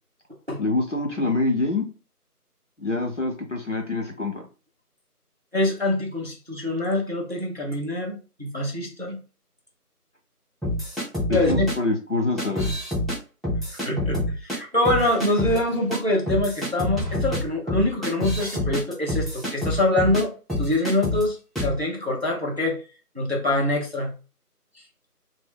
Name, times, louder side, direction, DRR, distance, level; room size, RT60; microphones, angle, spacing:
voice 1, 0.6-1.9 2.8-4.5 11.3-12.7, left 2 dB, 50° left, 1 dB, 0.6 m, -25 dB
voice 2, 5.5-9.2 11.3-11.7 13.8-20.3 20.6-22.8 23.2-24.1, left 1 dB, 45° right, -1 dB, 0.6 m, -25 dB
sound 1, 10.6-11.7 12.4-13.2 13.4-14.6 14.8-15.6 15.9-16.0 16.3-20.2 20.5-21.2 21.6-21.8, left 1 dB, ahead, 0.6 m, -27 dB
2.1 x 2.1 x 3.4 m, 0.34 s
figure-of-eight pair, 175°, 47 cm